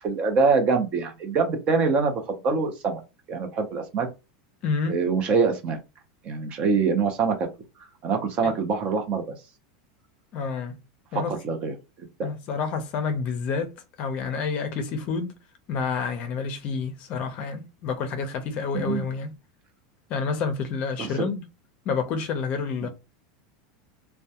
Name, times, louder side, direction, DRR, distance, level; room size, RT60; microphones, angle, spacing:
voice 1, 0.0-3.0 3.3-4.1 4.9-5.8 6.2-7.5 8.0-9.4 11.1-11.7 12.2-12.3 18.7-19.0 21.0-21.1, right 4 dB, 35° right, 0.6 m, -24 dB
voice 2, 4.6-5.0 8.4-8.5 10.3-10.8 11.1-11.4 12.2-15.4 15.7-19.3 20.1-21.4 21.9-22.9, left 5 dB, 40° left, 0.5 m, -29 dB
2.2 x 2.1 x 2.7 m
supercardioid pair, 145°, 3 cm